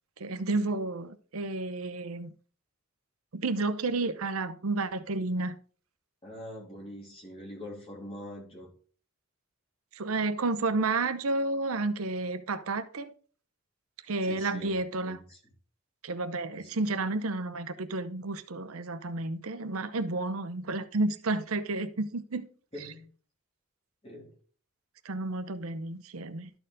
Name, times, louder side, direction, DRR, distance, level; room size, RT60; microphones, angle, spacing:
voice 1, 0.2-2.3 3.3-5.5 9.9-13.1 14.1-15.2 16.0-22.5 22.8-22.9 25.0-26.5, right 3 dB, 80° right, 10 dB, 0.7 m, -31 dB
voice 2, 6.2-8.7 14.2-14.7 15.0-15.4 16.5-16.7 22.7-23.0 24.0-24.3, equal, 30° left, -2 dB, 2.9 m, -44 dB
12.0 x 4.5 x 3.8 m, 0.41 s
head